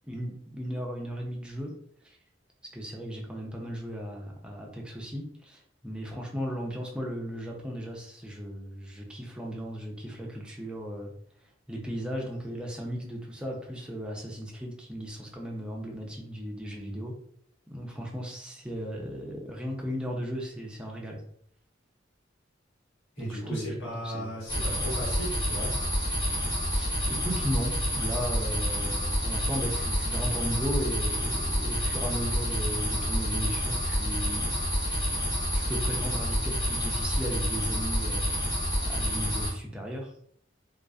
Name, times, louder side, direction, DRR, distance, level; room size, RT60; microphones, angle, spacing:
voice 1, 0.0-1.7 2.0-2.2 2.7-11.1 11.7-17.2 17.7-21.2 23.2-23.7 24.1-24.3 26.7-34.5 35.5-38.4 38.9-40.1, equal, 5° right, -1 dB, 0.5 m, -36 dB
voice 2, 23.2-25.8, right 1 dB, 80° left, -6 dB, 1.4 m, -36 dB
sound 1, 24.5-39.5, equal, 25° left, 0.8 m, -28 dB
2.4 x 2.4 x 2.3 m, 0.64 s
head